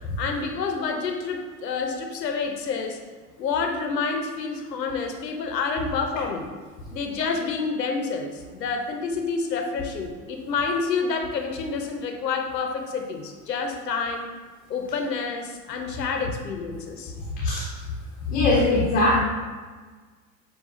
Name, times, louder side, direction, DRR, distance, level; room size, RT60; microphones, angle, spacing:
voice 1, 0.2-3.0 3.4-6.5 6.9-14.3 14.7-17.1, left 4 dB, 85° left, 4 dB, 0.6 m, -28 dB
voice 2, 17.2-17.7 18.2-19.2, left 2 dB, 20° left, -4 dB, 0.5 m, -21 dB
6.3 x 2.3 x 2.4 m, 1.4 s
figure-of-eight pair, 85°, 49 cm